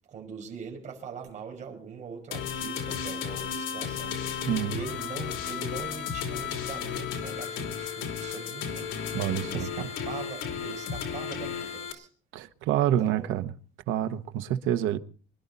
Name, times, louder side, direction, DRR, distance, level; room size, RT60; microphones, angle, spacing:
voice 1, 0.1-8.9 9.4-12.1 13.0-13.3, right 6 dB, 35° right, 5.6 m, -42 dB
sound 1, 2.3-11.9, left 7 dB, 80° left, 3.1 m, -34 dB
voice 2, 4.5-4.8 9.1-9.7 12.3-13.5 13.9-15.0, right 11 dB, 80° right, 1.2 m, -27 dB
25.5 x 12.0 x 4.1 m
cardioid pair, 150°, 20 cm